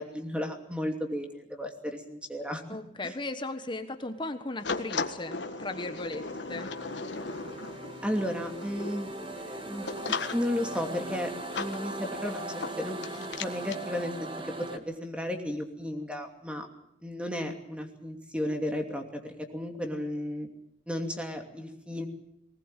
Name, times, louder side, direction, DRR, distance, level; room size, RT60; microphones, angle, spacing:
voice 1, 0.0-2.6 3.0-3.1 8.0-12.4 12.8-14.3 14.6-16.7 17.0-20.5 20.9-22.1, left 1 dB, 5° right, 4 dB, 2.7 m, -34 dB
voice 2, 2.7-6.7, left 2 dB, 25° left, 9 dB, 1.3 m, -37 dB
sound 1, 4.1-14.8, right 2 dB, 30° right, 1.8 m, -41 dB
sound 2, 4.6-13.8, left 4 dB, 85° left, 1.6 m, -38 dB
20.0 x 19.0 x 9.1 m, 0.76 s
head